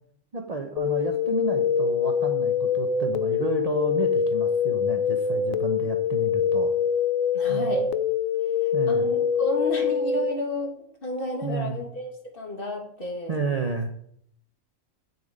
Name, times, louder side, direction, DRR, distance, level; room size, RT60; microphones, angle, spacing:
voice 1, 0.3-6.7 7.5-7.8 8.7-9.1 11.4-11.8 13.3-13.9, right 3 dB, 35° right, 4 dB, 0.7 m, -31 dB
sound 1, 0.8-10.3, left 7 dB, 75° left, 1.0 m, -24 dB
voice 2, 7.3-7.9 8.9-10.7 11.0-13.4, left 1 dB, 40° left, 0 dB, 2.1 m, -31 dB
8.8 x 6.7 x 5.1 m, 0.68 s
omnidirectional pair, 1.4 m